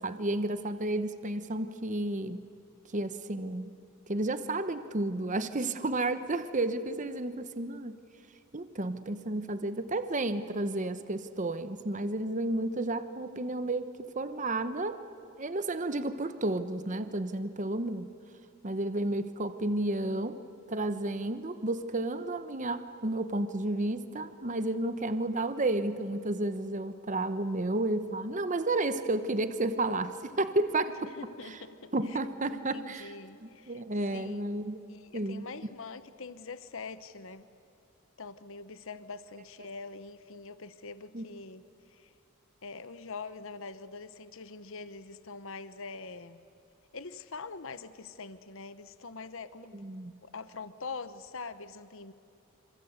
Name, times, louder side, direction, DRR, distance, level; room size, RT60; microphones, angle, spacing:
voice 1, 0.0-2.4 2.9-3.8 4.1-8.0 8.5-15.0 15.4-18.1 18.6-20.4 20.7-31.1 31.5-31.6 31.9-33.1 33.7-34.8 35.1-35.4 41.1-41.3 49.7-50.2, right 2 dB, 35° right, 11 dB, 1.0 m, -32 dB
voice 2, 31.1-32.2 32.4-33.8 34.1-34.4 34.9-37.5 38.2-41.6 41.9-42.1 42.6-46.4 46.9-49.8 50.2-52.1, left 4 dB, 60° left, 13 dB, 1.0 m, -44 dB
27.0 x 26.5 x 8.1 m, 2.6 s
head